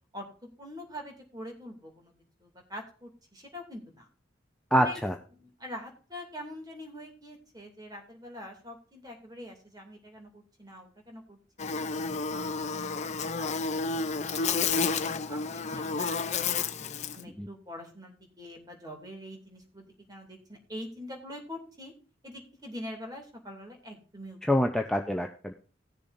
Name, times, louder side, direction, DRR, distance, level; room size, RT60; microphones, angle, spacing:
voice 1, 0.1-2.1 2.4-4.1 4.8-5.0 5.3-11.9 12.3-16.7 17.1-21.9 22.2-24.4, left 1 dB, 20° right, 2 dB, 2.6 m, -45 dB
voice 2, 4.7-5.2 17.4-17.5 24.4-25.5, equal, 5° left, 2 dB, 0.7 m, -26 dB
Buzz, 11.6-17.2, left 5 dB, 40° left, 0.6 m, -31 dB
18.5 x 6.9 x 2.6 m, 0.39 s
head